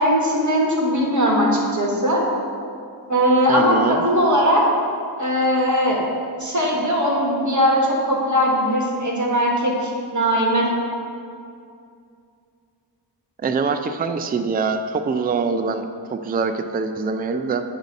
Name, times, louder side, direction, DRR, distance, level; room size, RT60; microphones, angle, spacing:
voice 1, 0.0-2.2 3.1-4.6 5.2-6.0 6.4-10.7, equal, 40° right, -2 dB, 1.3 m, -19 dB
voice 2, 3.5-4.0 13.4-17.6, right 5 dB, 25° right, 8 dB, 0.3 m, -24 dB
8.1 x 2.7 x 5.1 m, 2.4 s
cardioid pair, 50°, 44 cm